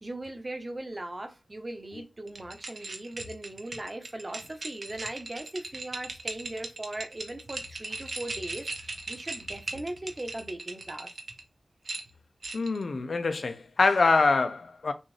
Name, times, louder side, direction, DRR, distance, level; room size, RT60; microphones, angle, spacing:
voice 1, 0.0-11.1, right 1 dB, 35° right, 1.0 m, -39 dB
sound 1, 2.3-11.4 11.9-12.8, right 3 dB, 80° right, 0.9 m, -39 dB
voice 2, 12.5-14.9, left 3 dB, 80° left, 0.6 m, -25 dB
6.2 x 2.5 x 3.3 m
wide cardioid pair, 55°, 0 cm